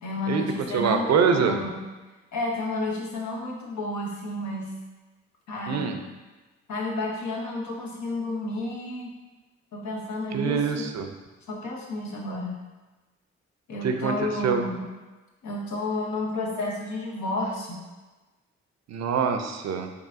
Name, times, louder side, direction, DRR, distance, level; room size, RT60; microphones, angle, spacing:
voice 1, 0.0-1.8 2.3-4.7 5.5-5.9 6.7-9.1 9.7-10.9 11.5-12.5 13.7-14.9 15.4-17.8, left 2 dB, 75° left, -2 dB, 0.9 m, -31 dB
voice 2, 0.7-1.6 5.7-6.0 10.3-11.1 13.8-14.7 18.9-19.9, right 6 dB, 65° right, 5 dB, 0.5 m, -25 dB
4.6 x 2.6 x 2.5 m, 1.2 s
supercardioid pair, 45°, 29 cm